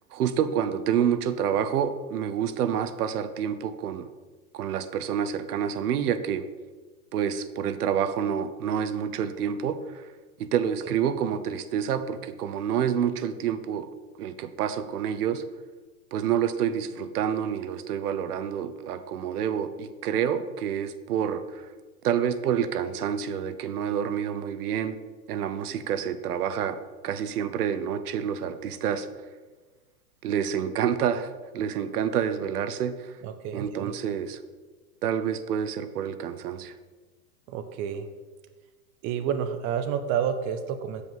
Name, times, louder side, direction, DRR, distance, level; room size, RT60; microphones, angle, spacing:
voice 1, 0.1-4.1 4.5-6.4 7.1-10.1 10.4-13.9 14.2-15.4 16.1-21.7 22.0-25.0 25.3-29.1 30.2-33.2 33.5-34.4 35.0-36.7, right 8 dB, 75° right, 12 dB, 0.9 m, -28 dB
voice 2, 33.2-33.9 37.5-38.1 39.0-41.0, right 8 dB, 25° right, 9 dB, 0.5 m, -29 dB
7.9 x 4.9 x 7.3 m, 1.3 s
hypercardioid pair, 130°, 46 cm